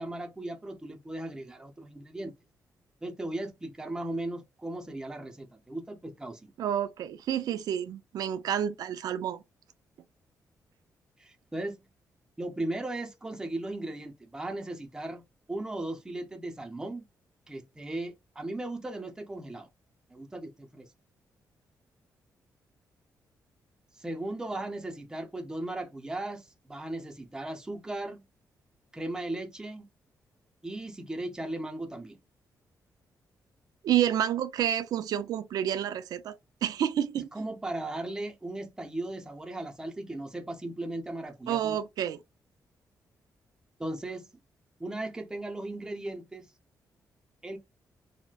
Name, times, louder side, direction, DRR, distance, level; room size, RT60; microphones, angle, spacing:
voice 1, 0.0-2.3 3.0-6.5 11.2-11.9 12.4-15.2 15.5-17.1 17.5-19.7 20.1-20.9 24.0-28.2 28.9-29.9 30.6-32.2 37.3-41.8 43.8-44.3 44.8-46.5 47.4-47.6, right 1 dB, 10° right, 0.5 m, -37 dB
voice 2, 6.6-9.4 33.8-37.3 41.5-42.2, right 10 dB, 75° right, 0.4 m, -29 dB
3.9 x 2.1 x 2.2 m
cardioid pair, 130°, 7 cm